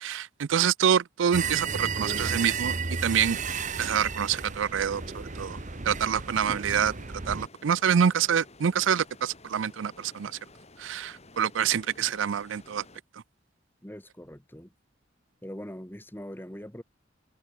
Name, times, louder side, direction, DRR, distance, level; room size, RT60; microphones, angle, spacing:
voice 1, 0.0-2.7 3.0-3.4 3.8-5.6 5.9-6.9 7.3-10.3 10.8-12.8, right 8 dB, 80° right, 0.4 m, -26 dB
sound 1, 1.3-7.5, right 5 dB, 40° right, 1.2 m, -33 dB
sound 2, 3.6-13.0, left 2 dB, 35° left, 6.8 m, -53 dB
voice 2, 13.8-14.7 15.4-16.8, equal, 10° left, 5.1 m, -42 dB
head